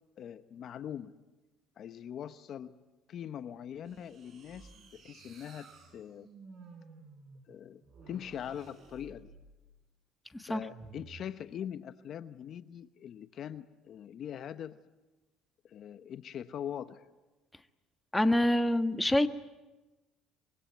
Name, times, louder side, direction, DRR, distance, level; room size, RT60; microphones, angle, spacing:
voice 1, 0.2-1.1 1.8-2.8 3.1-6.3 7.5-7.8 8.1-9.3 10.4-14.8 15.6-17.0, left 9 dB, 55° left, 11 dB, 0.9 m, -42 dB
sound 1, 3.8-9.8 10.7-11.3, right 4 dB, 45° right, 5.8 m, -54 dB
voice 2, 18.1-19.3, left 1 dB, 10° left, 8 dB, 1.3 m, -26 dB
25.0 x 22.5 x 9.3 m, 1.1 s
cardioid pair, 105°, 0 cm